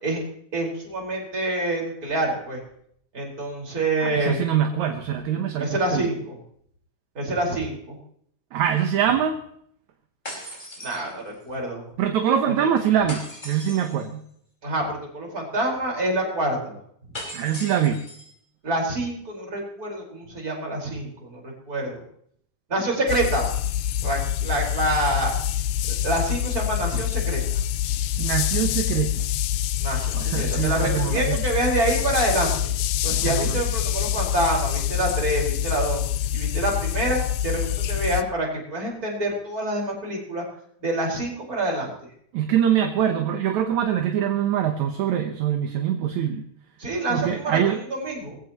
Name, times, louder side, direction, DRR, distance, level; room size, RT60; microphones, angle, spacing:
voice 1, 0.5-2.6 3.1-4.4 5.6-6.4 7.2-8.0 10.8-11.8 14.6-16.8 18.6-22.0 22.7-23.5 24.0-25.3 25.9-27.4 29.8-32.7 33.0-36.0 36.3-40.4 40.8-41.9 46.8-48.4, right 1 dB, 25° right, -1 dB, 5.1 m, -27 dB
voice 2, 4.0-6.1 8.5-9.4 12.0-14.2 17.3-18.1 28.2-29.3 30.1-31.4 33.1-33.6 42.3-46.4 47.1-47.8, right 9 dB, 70° right, 6 dB, 2.3 m, -24 dB
sound 1, 10.3-11.5 13.1-14.1 17.1-18.3, left 1 dB, 15° left, 5.2 m, -38 dB
sound 2, 23.1-38.2, left 11 dB, 80° left, 2.1 m, -26 dB
20.5 x 16.0 x 3.0 m, 0.66 s
omnidirectional pair, 3.6 m